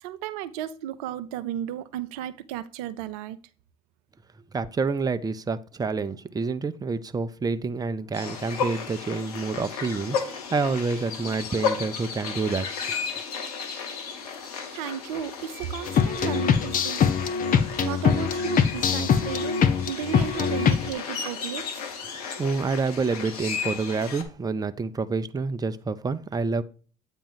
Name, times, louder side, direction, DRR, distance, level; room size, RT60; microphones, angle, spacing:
voice 1, 0.0-3.4 14.5-17.1 17.8-21.8, right 10 dB, 75° right, 0.5 m, -34 dB
voice 2, 4.5-12.7 22.4-26.6, right 4 dB, 20° right, 0.6 m, -28 dB
sound 1, 8.1-24.2, left 6 dB, 80° left, 0.9 m, -34 dB
sound 2, 15.9-20.9, left 7 dB, 45° left, 0.8 m, -23 dB
8.6 x 3.0 x 5.6 m
hypercardioid pair, 55°, 19 cm